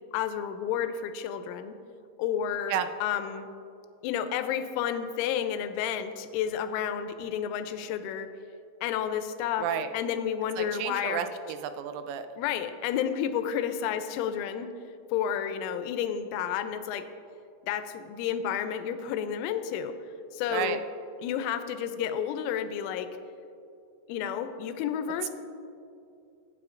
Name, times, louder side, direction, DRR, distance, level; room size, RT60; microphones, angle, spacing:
voice 1, 0.1-1.8 2.2-3.5 4.0-8.3 8.8-9.7 9.9-11.2 12.4-14.7 15.1-17.1 17.6-19.9 20.3-20.8 21.2-23.1 24.1-25.3, left 9 dB, 90° left, 9 dB, 3.1 m, -31 dB
voice 2, 10.6-12.3 20.5-20.8, right 9 dB, 85° right, 9 dB, 3.1 m, -31 dB
17.5 x 8.5 x 2.5 m, 2.7 s
omnidirectional pair, 5.5 m